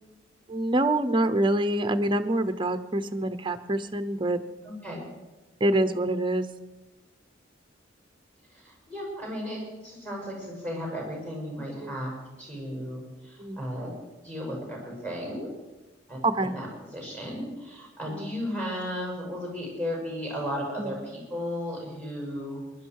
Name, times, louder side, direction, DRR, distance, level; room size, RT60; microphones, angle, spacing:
voice 1, 0.5-4.4 5.6-6.5 11.8-11.9 13.4-13.6 16.2-16.5 18.1-18.3 20.8-20.9, right 1 dB, 25° right, 10 dB, 0.7 m, -26 dB
voice 2, 4.6-5.0 8.5-12.1 12.4-13.9 14.2-15.5 16.1-16.7 16.9-22.6, equal, 10° left, -1 dB, 6.0 m, -35 dB
20.5 x 11.5 x 4.7 m, 1.1 s
head